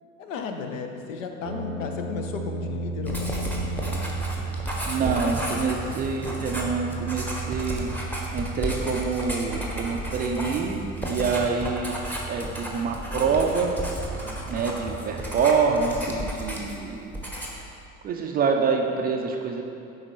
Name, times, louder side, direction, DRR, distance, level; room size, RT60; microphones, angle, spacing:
voice 1, 0.2-3.8 4.0-4.2 5.0-5.1 5.4-5.6 11.1-11.2 14.2-14.5 16.6-16.8, left 5 dB, 65° left, 5 dB, 0.7 m, -36 dB
sound 1, 1.4-15.5, right 3 dB, 85° right, 0.6 m, -36 dB
Writing, 3.1-16.9 17.1-17.7, equal, 5° left, 0.9 m, -33 dB
voice 2, 4.9-7.9 8.3-12.0 12.3-13.7 14.5-17.2 18.0-19.6, right 5 dB, 25° right, 2 dB, 0.4 m, -26 dB
9.8 x 4.0 x 3.1 m, 2.6 s
figure-of-eight pair, 70°, 42 cm